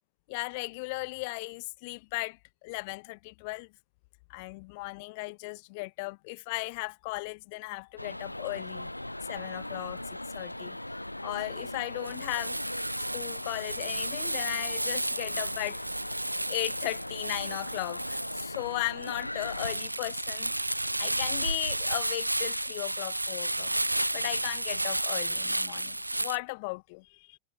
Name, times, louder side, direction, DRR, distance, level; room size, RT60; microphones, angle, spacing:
voice 1, 0.3-3.7 4.3-8.9 9.3-10.8 11.2-12.6 13.1-15.8 16.5-20.5 21.0-23.7 24.1-27.4, left 27 dB, 45° left, 2.4 m, -36 dB
sound 1, 8.0-19.7, left 1 dB, 85° left, 1.8 m, -39 dB
Crumpling crinkling, 12.0-26.4, right 1 dB, 85° right, 1.4 m, -32 dB
figure-of-eight pair, 90°, 0 cm